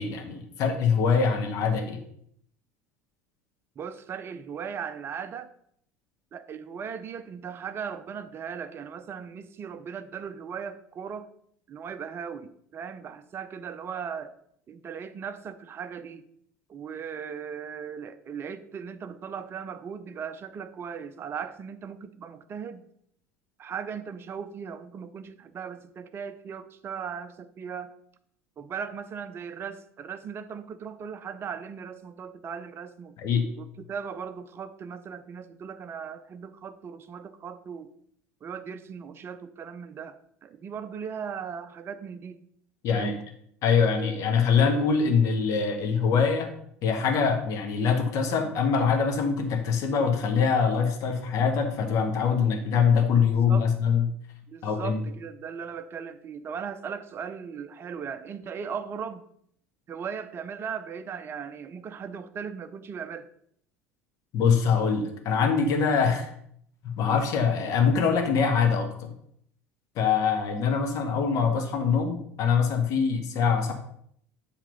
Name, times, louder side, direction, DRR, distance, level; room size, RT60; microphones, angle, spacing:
voice 1, 0.0-2.0 33.2-33.5 42.8-43.1 43.6-46.5 46.8-54.1 54.6-55.0 64.3-66.3 66.8-69.1 69.9-73.7, left 6 dB, 45° left, 5 dB, 1.3 m, -24 dB
voice 2, 3.8-5.5 6.3-11.3 11.7-14.4 14.7-16.2 16.7-22.9 23.6-27.9 28.6-33.1 33.6-37.9 38.4-42.5 42.9-43.2 53.2-53.7 54.5-59.3 59.9-63.3, right 7 dB, 30° right, 11 dB, 0.6 m, -38 dB
7.4 x 3.7 x 5.3 m, 0.68 s
figure-of-eight pair, 70°, 8 cm